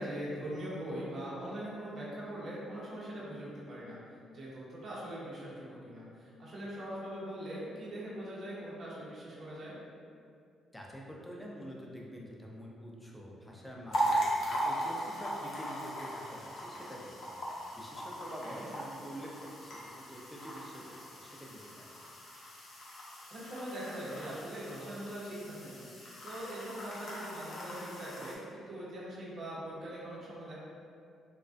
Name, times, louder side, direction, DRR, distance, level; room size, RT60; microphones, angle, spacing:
voice 1, 0.0-4.0 4.3-9.8 18.4-18.7 23.3-30.6, right 1 dB, 55° right, -7 dB, 0.6 m, -42 dB
voice 2, 10.7-17.3 17.7-21.8, equal, 5° left, -3 dB, 0.4 m, -47 dB
sound 1, 13.9-28.3, right 1 dB, 65° left, 0.5 m, -39 dB
2.3 x 2.1 x 2.5 m, 2.3 s
cardioid pair, 90°, 0 cm